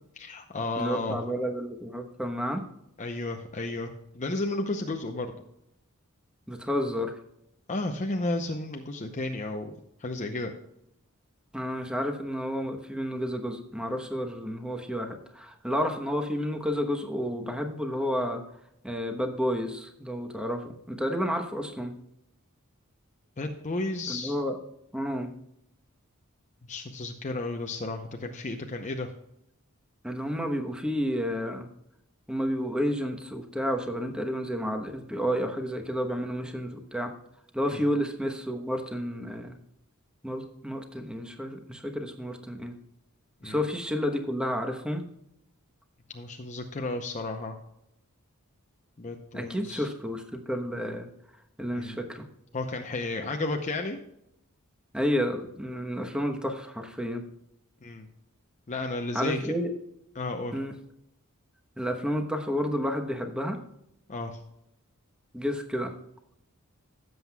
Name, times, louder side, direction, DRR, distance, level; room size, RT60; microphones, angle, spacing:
voice 1, 0.2-1.2 3.0-5.4 7.7-10.5 23.4-24.4 26.7-29.1 37.7-37.8 43.4-43.6 46.1-47.6 49.0-49.9 51.7-52.0 52.5-54.0 57.8-58.1 58.7-59.5 60.1-60.5 64.1-64.4, left 2 dB, 35° left, 3 dB, 0.7 m, -33 dB
voice 2, 0.8-2.6 6.5-7.2 11.5-18.4 18.8-21.9 24.1-24.6 24.9-25.3 30.0-31.7 32.3-37.1 37.5-39.6 40.2-42.7 43.4-45.0 49.3-51.1 51.6-52.3 54.9-57.2 59.1-59.7 60.5-60.7 61.8-63.6 65.3-65.9, equal, 5° right, 4 dB, 1.0 m, -31 dB
16.0 x 7.8 x 2.3 m, 0.80 s
head